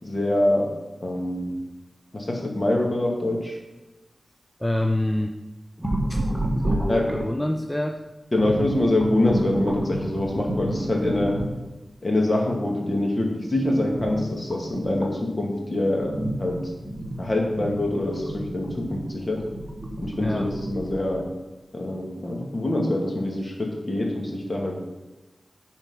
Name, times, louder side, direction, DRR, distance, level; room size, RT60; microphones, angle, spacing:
voice 1, 0.0-0.7 1.0-1.6 2.1-3.6 6.9-7.2 8.3-11.4 12.0-16.6 17.2-19.4 20.0-21.3 21.7-24.8, left 1 dB, 35° left, 0 dB, 2.1 m, -25 dB
voice 2, 4.6-5.4 5.8-6.2 6.6-8.0 9.2-9.3 20.2-20.5, left 1 dB, 10° left, 4 dB, 0.6 m, -27 dB
sound 1, 5.8-7.5 8.4-11.7 13.9-15.2 15.7-21.2, right 1 dB, 15° right, 1.8 m, -30 dB
10.5 x 4.5 x 5.5 m, 1.1 s
wide cardioid pair, 70°, 0 cm